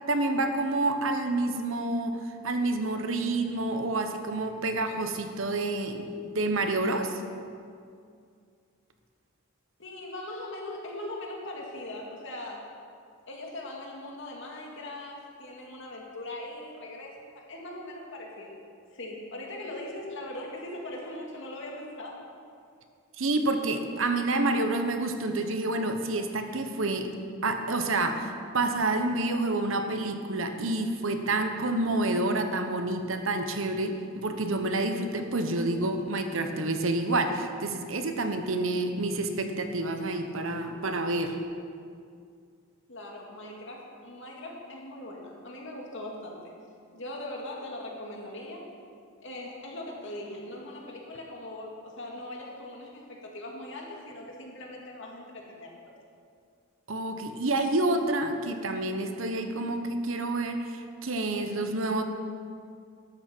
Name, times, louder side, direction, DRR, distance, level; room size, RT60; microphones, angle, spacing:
voice 1, 0.1-2.2 2.4-6.1 6.3-7.2 23.2-27.1 27.4-41.4 56.9-62.0, right 2 dB, 65° right, 6 dB, 1.1 m, -28 dB
voice 2, 9.8-12.6 13.3-18.6 18.9-22.2 42.9-46.4 46.9-48.7 49.2-55.7, left 1 dB, 60° left, -1 dB, 2.3 m, -40 dB
13.0 x 12.0 x 4.6 m, 2.3 s
head